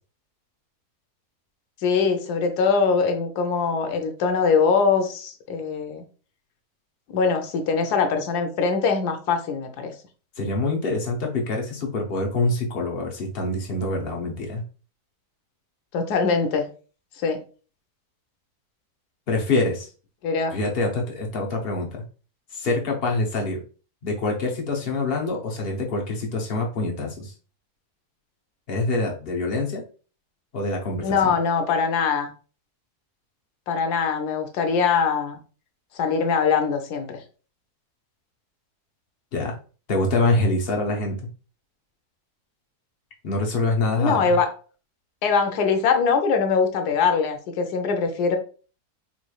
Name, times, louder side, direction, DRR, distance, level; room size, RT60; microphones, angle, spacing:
voice 1, 1.8-6.0 7.1-9.9 15.9-16.7 17.2-17.4 20.2-20.5 31.0-32.3 33.7-35.4 35.9-37.2 44.0-44.5 45.2-48.4, left 5 dB, 90° left, 5 dB, 1.2 m, -22 dB
voice 2, 10.4-14.6 19.3-19.9 20.5-22.0 22.5-23.6 24.0-27.3 28.7-29.8 30.5-31.3 39.3-39.5 39.9-41.2 43.2-44.2, left 2 dB, 50° left, 0 dB, 0.8 m, -25 dB
4.0 x 3.1 x 2.3 m, 0.37 s
omnidirectional pair, 1.7 m